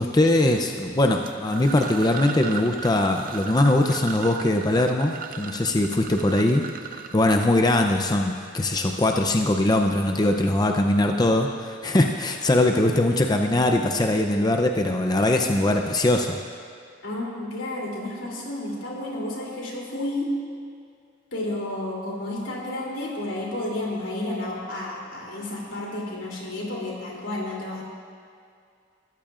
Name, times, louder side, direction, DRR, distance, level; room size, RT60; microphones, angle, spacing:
voice 1, 0.0-6.6 7.1-16.4, left 1 dB, 20° left, 3 dB, 0.6 m, -21 dB
sound 1, 1.2-8.0, right 7 dB, 50° right, 0.6 m, -37 dB
voice 2, 17.0-20.3 21.3-27.8, left 1 dB, 85° left, -3 dB, 3.2 m, -31 dB
22.0 x 14.0 x 2.5 m, 2.3 s
head